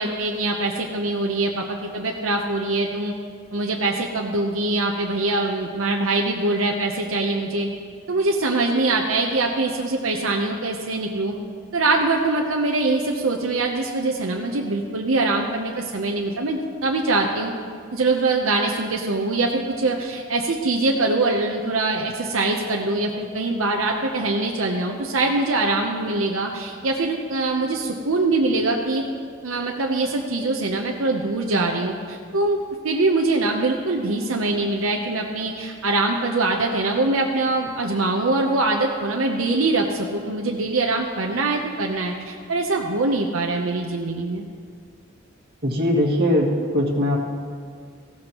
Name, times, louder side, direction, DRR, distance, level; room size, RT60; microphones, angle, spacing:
voice 1, 0.0-3.1 3.5-7.7 8.1-11.3 11.7-17.5 17.9-29.0 29.4-32.6 32.8-44.4, right 2 dB, 80° right, 0 dB, 0.8 m, -23 dB
voice 2, 45.6-47.2, left 1 dB, 55° right, -4 dB, 2.0 m, -20 dB
16.0 x 13.0 x 3.0 m, 2.1 s
head